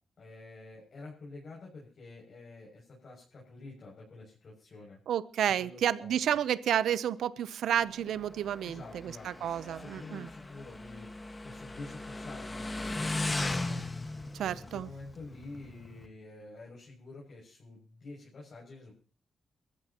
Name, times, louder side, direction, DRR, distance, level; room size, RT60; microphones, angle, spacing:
voice 1, 0.2-5.0 5.6-6.4 8.6-13.8 14.4-18.9, left 3 dB, 50° left, -4 dB, 7.0 m, -48 dB
voice 2, 5.1-10.3 14.3-14.9, right 10 dB, 85° right, 16 dB, 0.7 m, -31 dB
Motorcycle, 7.8-16.1, left 2 dB, 20° left, 1.6 m, -38 dB
23.0 x 14.0 x 3.0 m, 0.37 s
cardioid pair, 90°, 0 cm